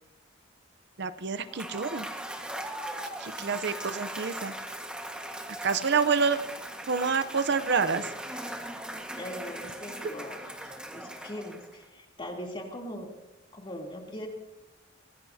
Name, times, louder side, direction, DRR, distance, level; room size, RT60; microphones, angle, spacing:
voice 1, 1.0-2.1 3.2-4.5 5.6-6.4 6.9-8.1, right 5 dB, 65° right, 11 dB, 0.7 m, -27 dB
Cheering / Applause / Crowd, 1.4-11.8, right 1 dB, 5° right, 1.6 m, -39 dB
voice 2, 3.2-3.6 9.2-13.1 13.5-14.3, equal, 30° left, 0 dB, 3.1 m, -41 dB
24.0 x 19.5 x 2.8 m, 0.95 s
head